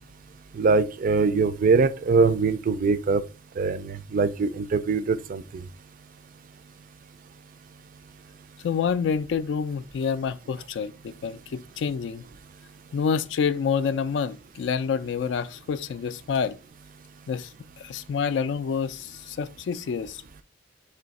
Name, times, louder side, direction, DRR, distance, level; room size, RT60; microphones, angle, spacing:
voice 1, 0.5-3.2 3.6-5.6, right 4 dB, 45° right, 0.3 m, -22 dB
voice 2, 8.6-12.2 12.9-16.6 17.3-17.5 17.8-20.4, left 6 dB, 70° left, 0.3 m, -28 dB
3.3 x 2.7 x 4.0 m
head